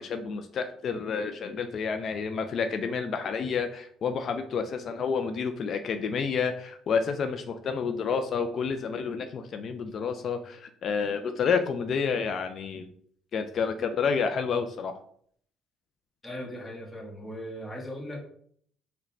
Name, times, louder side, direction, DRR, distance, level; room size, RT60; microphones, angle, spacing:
voice 1, 0.0-12.9 13.3-15.0, left 5 dB, 55° left, 7 dB, 0.3 m, -29 dB
voice 2, 16.2-18.2, equal, 15° left, -2 dB, 1.2 m, -38 dB
3.8 x 2.2 x 4.1 m, 0.62 s
supercardioid pair, 70°, 0 cm